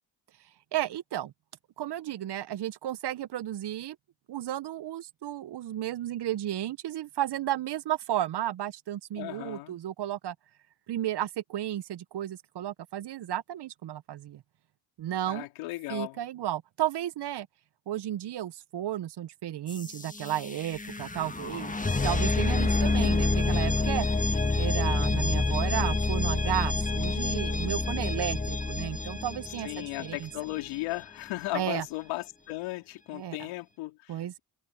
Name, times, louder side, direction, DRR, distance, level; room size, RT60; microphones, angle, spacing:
voice 1, 0.7-1.3 1.8-4.0 4.3-10.3 10.9-14.4 15.0-15.5 15.9-17.5 17.9-21.7 22.0-24.1 24.5-30.3 31.5-31.8 33.1-33.4 34.1-34.4, right 12 dB, 60° right, 1.0 m, -33 dB
voice 2, 9.1-9.7 15.3-16.2 22.7-23.3 29.6-34.4, left 19 dB, 90° left, 3.9 m, -36 dB
sound 1, 19.7-30.5, left 3 dB, 15° left, 1.5 m, -28 dB
supercardioid pair, 50°, 46 cm